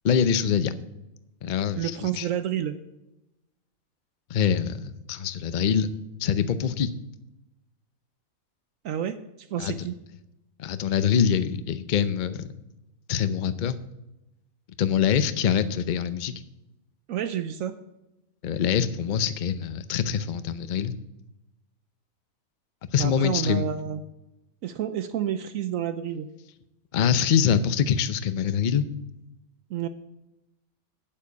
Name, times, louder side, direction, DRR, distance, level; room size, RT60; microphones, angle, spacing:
voice 1, 0.0-0.7 1.4-2.3 4.3-5.9 6.2-6.9 9.6-9.9 10.6-12.5 13.1-13.8 14.8-16.3 18.4-20.9 22.9-23.6 26.9-28.8, left 8 dB, 50° left, 12 dB, 0.6 m, -24 dB
voice 2, 1.8-2.8 8.8-9.2 9.5-9.9 17.1-17.8 23.0-24.0 24.6-26.3 29.7-29.9, right 10 dB, 70° right, 11 dB, 1.0 m, -29 dB
8.5 x 7.7 x 8.3 m, 0.95 s
omnidirectional pair, 1.5 m